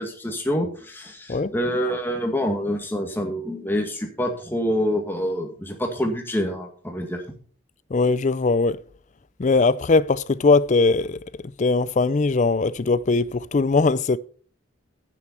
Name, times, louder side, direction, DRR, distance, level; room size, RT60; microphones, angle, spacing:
voice 1, 0.0-7.2, equal, 10° left, 2.0 m, -26 dB
voice 2, 7.9-8.8 9.4-11.2 11.6-14.2, left 3 dB, 35° left, 0.4 m, -20 dB
11.0 x 9.3 x 4.3 m
head